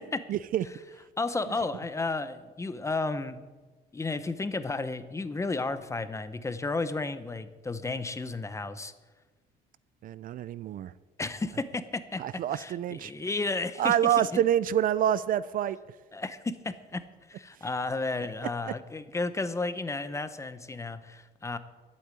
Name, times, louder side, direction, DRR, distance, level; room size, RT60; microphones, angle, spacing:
voice 1, 0.3-0.6 10.0-10.9 12.2-13.1 13.8-15.8 18.7-18.8, right 10 dB, 55° right, 18 dB, 0.5 m, -27 dB
voice 2, 1.2-3.5 3.9-8.9 11.2-14.4 16.1-21.6, left 3 dB, 15° left, 12 dB, 0.9 m, -33 dB
11.5 x 8.6 x 9.0 m, 1.3 s
cardioid pair, 110°, 17 cm